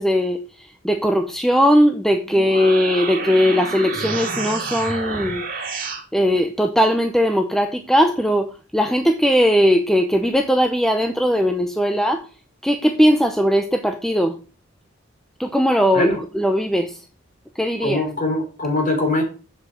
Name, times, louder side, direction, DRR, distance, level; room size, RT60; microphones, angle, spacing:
voice 1, 0.0-5.6 6.1-12.3 12.6-14.4 15.4-17.0 17.6-18.0, equal, ahead, 6 dB, 0.6 m, -19 dB
sound 1, 2.2-6.0, right 3 dB, 45° right, 2.8 m, -28 dB
voice 2, 17.8-19.2, left 2 dB, 40° left, 3 dB, 3.5 m, -22 dB
7.8 x 7.4 x 6.3 m, 0.36 s
head